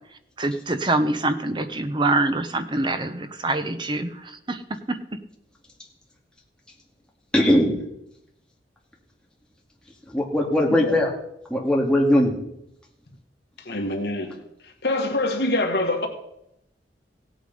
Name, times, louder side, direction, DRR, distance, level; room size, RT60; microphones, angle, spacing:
voice 1, 0.4-5.2, right 2 dB, 25° right, 0.9 m, -25 dB
voice 2, 7.3-7.8 10.1-11.1 11.5-12.4, left 1 dB, 5° left, 2.2 m, -19 dB
voice 3, 13.7-16.1, left 2 dB, 65° left, 1.9 m, -25 dB
16.0 x 8.5 x 5.3 m
head